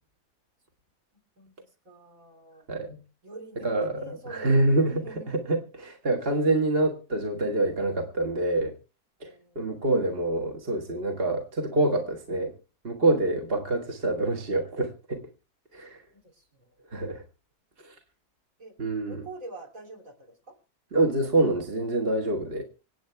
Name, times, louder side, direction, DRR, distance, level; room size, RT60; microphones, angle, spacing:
voice 1, 1.4-2.7 3.2-5.3 9.2-9.8 13.4-13.7 15.7-15.8 16.1-16.8 18.6-18.7 19.1-20.5, right 1 dB, 55° right, 3 dB, 3.5 m, -46 dB
voice 2, 2.7-3.0 3.6-8.7 9.2-12.5 12.8-15.2 15.7-16.0 16.9-17.2 17.8-17.9 18.8-19.3 20.9-22.6, right 2 dB, 40° right, 3 dB, 1.7 m, -26 dB
26.0 x 8.7 x 3.4 m, 0.32 s
omnidirectional pair, 1.7 m